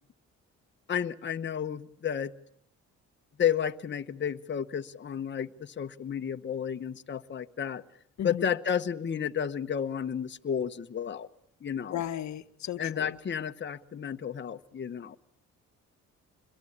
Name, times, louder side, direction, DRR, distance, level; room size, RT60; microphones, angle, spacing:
voice 1, 0.9-2.3 3.4-7.8 8.2-11.3 11.6-12.0 12.8-15.2, left 8 dB, 40° left, 1.1 m, -32 dB
voice 2, 8.2-8.5 11.9-13.2, left 11 dB, 65° left, 1.2 m, -35 dB
26.5 x 22.0 x 8.6 m
cardioid pair, 90°, 30 cm